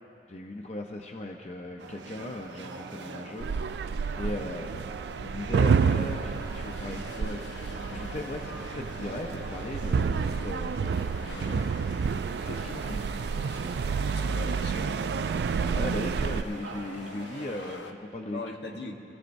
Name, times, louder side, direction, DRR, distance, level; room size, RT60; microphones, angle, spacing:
voice 1, 0.3-3.6 4.2-4.9 5.2-7.6 7.9-11.7 12.4-13.0 15.7-18.5, left 1 dB, 40° left, 2 dB, 0.7 m, -38 dB
sound 1, 1.8-17.8, right 3 dB, 90° right, 0.7 m, -44 dB
sound 2, 3.4-16.4, right 5 dB, 65° right, 0.3 m, -29 dB
sound 3, 5.7-17.9, left 3 dB, 90° left, 0.7 m, -46 dB
voice 2, 14.1-15.6 18.3-19.0, left 2 dB, 70° left, 1 dB, 1.2 m, -41 dB
23.5 x 16.0 x 2.6 m, 2.8 s
head